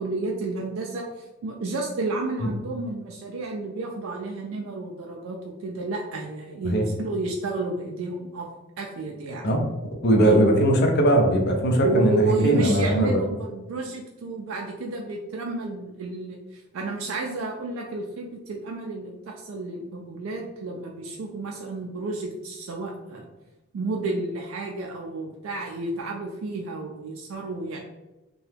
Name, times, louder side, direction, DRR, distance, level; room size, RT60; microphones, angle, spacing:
voice 1, 0.0-8.5 8.8-9.5 10.2-10.4 11.8-23.3 23.7-27.8, right 2 dB, 70° right, 1 dB, 0.4 m, -31 dB
voice 2, 10.0-13.2, right 1 dB, 55° left, 2 dB, 0.5 m, -19 dB
2.8 x 2.2 x 3.3 m, 1.0 s
head